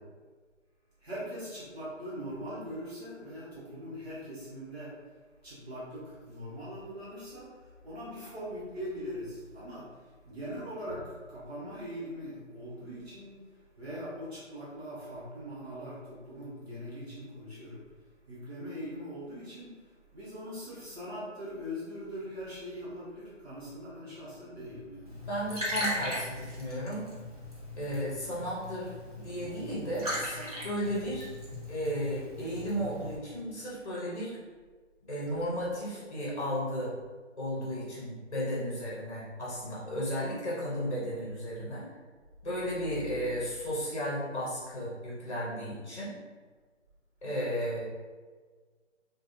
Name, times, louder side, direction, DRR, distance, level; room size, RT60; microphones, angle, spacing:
voice 1, 1.0-5.1 5.4-25.3, equal, 55° right, -9 dB, 1.1 m, -41 dB
Liquid, 25.0-33.1, equal, 30° right, 0.7 m, -39 dB
voice 2, 25.3-27.1 27.8-31.3 31.7-34.4 35.1-36.9 37.4-41.9 42.4-46.1 47.2-47.9, equal, 35° left, -7 dB, 0.8 m, -34 dB
3.2 x 2.3 x 2.6 m, 1.5 s
figure-of-eight pair, 160°, 38 cm